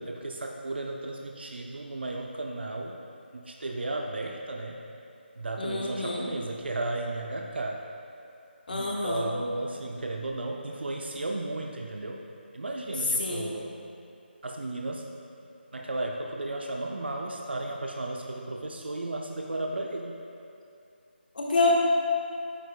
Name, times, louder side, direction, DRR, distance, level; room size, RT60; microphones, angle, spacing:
voice 1, 0.0-3.0 3.3-4.8 5.4-7.8 8.7-12.2 12.5-13.7 14.4-15.1 15.7-20.2, right 2 dB, 65° right, 1 dB, 0.6 m, -34 dB
voice 2, 5.6-6.2 8.7-9.3 13.2-13.5 21.3-21.8, left 2 dB, 50° left, -3 dB, 1.2 m, -27 dB
9.1 x 8.0 x 2.2 m, 2.6 s
figure-of-eight pair, 160°, 6 cm